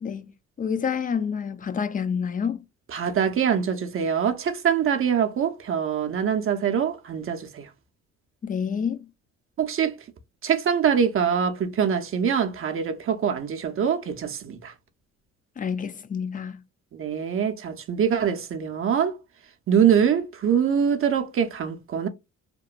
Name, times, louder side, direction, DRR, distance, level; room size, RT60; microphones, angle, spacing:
voice 1, 0.0-2.6 8.4-9.1 15.6-16.6, left 6 dB, 30° left, 0.3 m, -28 dB
voice 2, 2.9-7.7 9.6-10.0 10.4-14.7 16.9-19.2 19.7-22.1, right 8 dB, 45° right, 0.5 m, -24 dB
2.9 x 2.1 x 2.3 m
cardioid pair, 90°, 30 cm